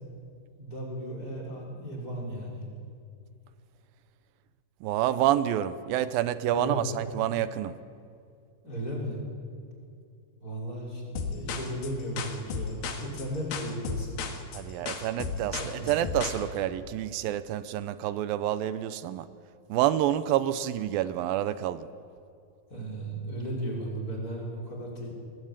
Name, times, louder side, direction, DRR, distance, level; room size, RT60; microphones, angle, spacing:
voice 1, 0.6-2.7 6.5-6.9 8.6-9.2 10.4-14.2 15.5-15.9 22.7-25.2, right 1 dB, 25° left, -2 dB, 5.8 m, -35 dB
voice 2, 4.8-7.8 14.5-19.3 19.7-21.9, right 12 dB, 85° right, 13 dB, 2.5 m, -28 dB
sound 1, 11.2-16.4, left 5 dB, 85° left, 3.5 m, -34 dB
21.0 x 21.0 x 9.0 m, 2.3 s
omnidirectional pair, 4.1 m